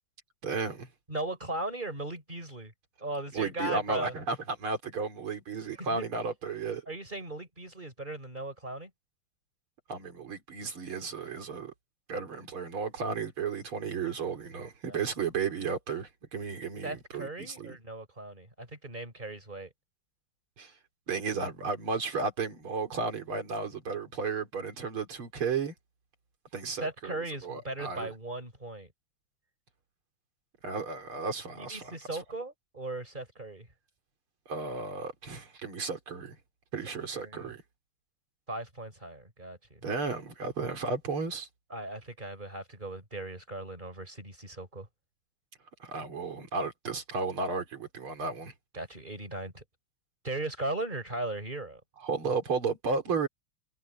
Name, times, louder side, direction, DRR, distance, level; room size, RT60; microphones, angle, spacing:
voice 1, 0.4-0.9 3.3-6.9 9.9-11.7 12.1-17.7 20.6-20.7 21.1-25.7 26.5-28.1 30.6-32.0 34.5-36.4 36.7-37.6 39.8-41.5 45.8-48.5 52.0-53.3, right 4 dB, 75° right, 4.2 m, -33 dB
voice 2, 1.1-2.7 3.0-4.1 5.8-6.1 6.9-8.9 14.9-15.0 16.8-19.7 26.8-28.9 31.6-33.7 37.1-37.5 38.5-39.8 41.7-44.9 48.7-49.6 50.2-51.8, right 2 dB, 20° right, 5.1 m, -38 dB
omnidirectional pair, 2.4 m